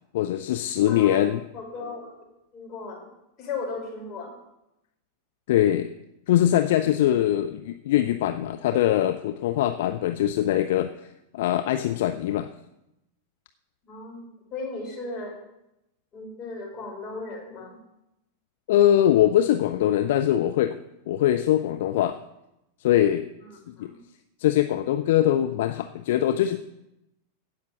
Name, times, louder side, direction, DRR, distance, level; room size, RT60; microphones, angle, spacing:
voice 1, 0.1-1.4 5.5-5.9 6.3-10.9 11.3-12.5 18.7-20.8 21.1-22.2 22.8-23.3 23.8-23.9 24.4-26.6, left 12 dB, 55° left, 8 dB, 0.6 m, -22 dB
voice 2, 0.9-1.2 1.5-2.1 2.5-3.1 3.4-4.3 13.8-14.2 14.5-15.3 16.1-17.8 23.5-24.0, left 3 dB, 30° left, -1 dB, 4.9 m, -36 dB
15.5 x 5.9 x 7.5 m, 0.88 s
figure-of-eight pair, 90°, 0 cm